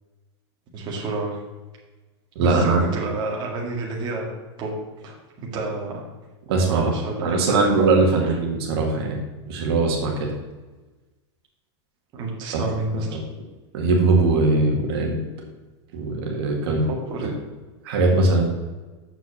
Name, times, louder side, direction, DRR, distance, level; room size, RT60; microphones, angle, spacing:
voice 1, 0.7-1.4 2.4-4.3 4.6-4.7 5.0-6.0 6.7-8.2 12.1-13.1 16.6-17.3, right 3 dB, 30° right, -2 dB, 1.9 m, -30 dB
voice 2, 2.4-2.8 6.5-6.9 7.2-9.2 9.5-10.3 13.1-13.2 13.7-15.2 15.9-16.8 17.8-18.4, right 3 dB, 55° right, 0 dB, 1.9 m, -20 dB
7.1 x 6.0 x 7.0 m, 1.2 s
supercardioid pair, 160°, 15 cm